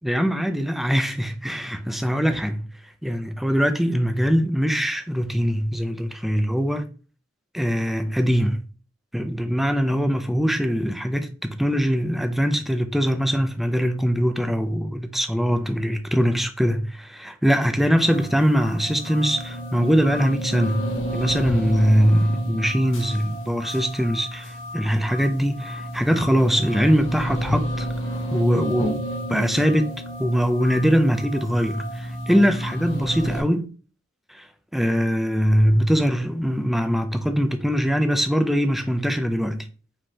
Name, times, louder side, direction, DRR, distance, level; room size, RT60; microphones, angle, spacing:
voice 1, 0.0-2.6 3.0-6.9 7.5-8.6 9.1-27.9 28.3-29.9 30.2-33.7 34.3-34.4 34.7-39.7, equal, ahead, 0.4 m, -22 dB
sound 1, 18.0-33.4, equal, 75° left, 1.8 m, -31 dB
5.1 x 3.7 x 2.8 m
head